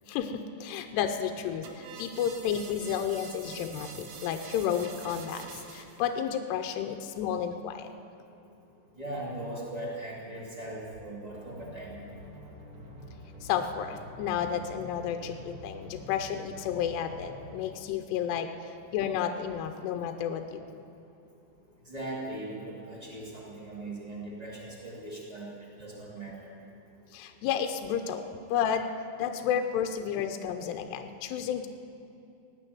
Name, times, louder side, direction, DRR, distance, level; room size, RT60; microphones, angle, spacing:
voice 1, 0.1-7.9 13.4-20.6 27.1-28.9 29.2-31.7, left 8 dB, 80° left, 6 dB, 2.4 m, -32 dB
sound 1, 1.6-6.0, right 6 dB, 70° right, 3.4 m, -46 dB
voice 2, 9.0-12.0 21.8-25.5 25.8-26.5, right 1 dB, 30° right, -4 dB, 0.7 m, -39 dB
sound 2, 11.3-17.6, equal, 55° right, 3.5 m, -47 dB
17.5 x 9.2 x 9.1 m, 2.7 s
omnidirectional pair, 5.5 m